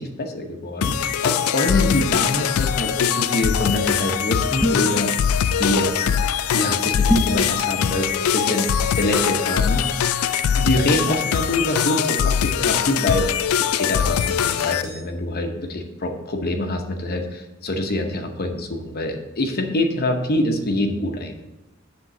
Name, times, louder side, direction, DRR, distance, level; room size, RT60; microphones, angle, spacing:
voice 1, 0.0-5.1 5.6-6.1 6.5-10.0 10.5-13.3 13.6-21.4, left 1 dB, 45° left, 5 dB, 0.8 m, -25 dB
sound 1, 0.8-14.8, left 8 dB, 80° left, 0.4 m, -22 dB
sound 2, 4.6-5.0 7.1-7.4, equal, 5° left, 0.4 m, -21 dB
sound 3, 7.3-7.6 8.4-9.0 10.4-10.5 10.9-11.6 13.2-13.3 13.8-15.0, right 1 dB, 20° right, 2.1 m, -43 dB
7.5 x 3.7 x 6.4 m, 0.99 s
head